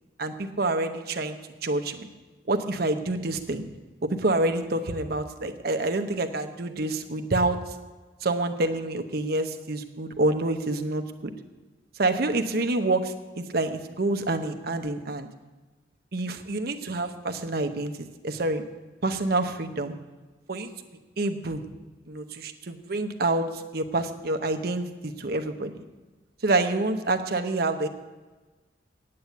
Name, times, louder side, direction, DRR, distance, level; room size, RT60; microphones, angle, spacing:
voice 1, 0.2-1.4 1.6-2.1 2.5-3.6 4.0-7.6 8.2-11.3 12.0-15.3 16.1-18.6 19.0-19.9 20.5-20.7 21.2-21.6 22.1-25.8 26.4-27.9, right 2 dB, 55° right, 7 dB, 0.9 m, -27 dB
8.6 x 8.3 x 8.2 m, 1.3 s
head